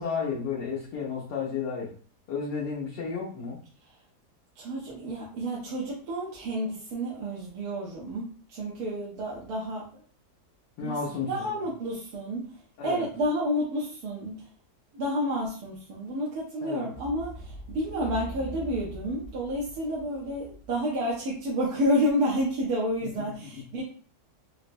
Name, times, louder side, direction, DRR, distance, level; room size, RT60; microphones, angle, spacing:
voice 1, 0.0-1.9 2.3-3.6 10.8-11.5 12.8-13.0 16.6-16.9 23.5-23.6, left 5 dB, 90° left, -6 dB, 1.5 m, -32 dB
voice 2, 4.6-10.0 10.8-14.5 14.9-23.8, equal, 70° right, -5 dB, 1.2 m, -30 dB
sound 1, 16.9-21.2 21.8-22.5, right 1 dB, 70° left, 1.3 m, -42 dB
4.3 x 2.0 x 2.5 m, 0.43 s
omnidirectional pair, 1.8 m